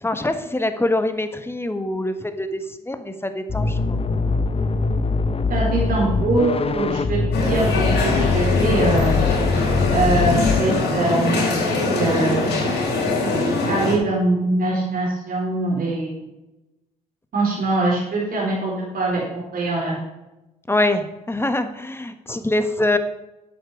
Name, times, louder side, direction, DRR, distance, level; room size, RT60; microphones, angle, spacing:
voice 1, 0.0-4.0 20.7-23.0, left 1 dB, 15° left, 9 dB, 1.4 m, -24 dB
sound 1, 3.5-10.6, left 4 dB, 30° left, 0.9 m, -22 dB
voice 2, 5.5-9.1 9.9-11.6 11.9-12.4 13.7-16.2 17.3-19.9, right 2 dB, 50° right, -4 dB, 4.3 m, -23 dB
sound 2, 7.3-14.0, left 2 dB, 65° left, 4.1 m, -22 dB
10.0 x 8.0 x 4.8 m, 0.98 s
hypercardioid pair, 50°, 19 cm